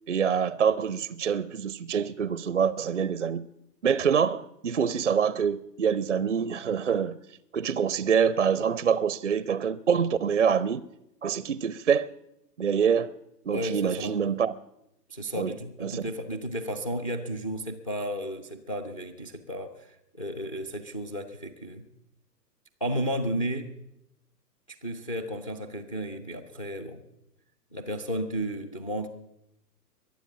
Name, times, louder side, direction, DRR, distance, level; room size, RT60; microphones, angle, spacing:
voice 1, 0.1-3.5 3.8-7.2 7.5-10.9 11.2-12.1 12.6-13.1 13.5-14.5 15.3-15.5 15.8-16.0, right 7 dB, 50° right, 0.4 m, -25 dB
voice 2, 13.5-14.2 15.1-21.9 22.8-23.7 24.7-27.0 27.7-29.1, equal, 20° left, 0.5 m, -33 dB
22.5 x 8.0 x 6.9 m
figure-of-eight pair, 125°, 50 cm